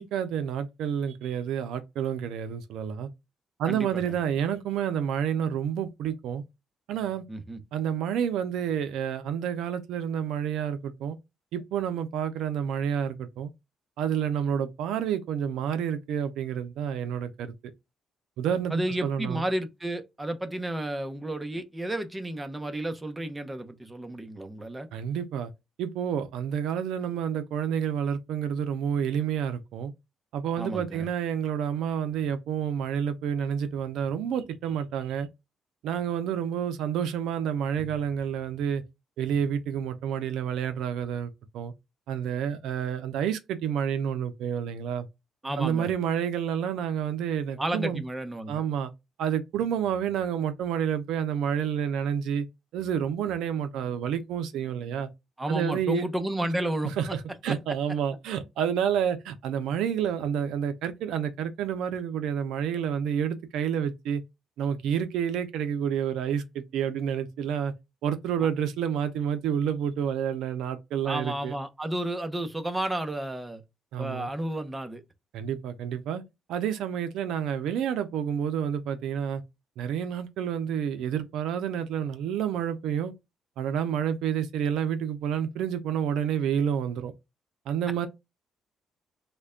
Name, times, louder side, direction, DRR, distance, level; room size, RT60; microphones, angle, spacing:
voice 1, 0.0-3.1 3.6-6.4 6.9-7.2 7.7-11.2 11.5-13.5 14.0-17.5 18.4-18.7 19.0-19.4 24.9-25.5 25.8-29.9 30.3-35.3 35.8-38.8 39.2-41.7 42.1-45.1 45.6-48.0 48.5-48.9 49.2-52.5 52.7-55.1 55.5-56.0 57.0-64.2 64.6-67.7 68.0-71.5 73.9-74.3 75.3-76.2 76.5-79.4 79.8-83.1 83.6-87.1 87.7-88.1, right 8 dB, 85° right, 0.4 m, -29 dB
voice 2, 3.7-4.2 7.3-7.6 18.7-24.9 30.6-31.1 45.4-45.9 47.6-48.6 55.4-56.9 57.5-57.6 68.4-68.5 71.0-73.6 74.0-75.0, right 1 dB, 15° right, 0.6 m, -32 dB
3.2 x 2.2 x 3.6 m
cardioid pair, 90°, 0 cm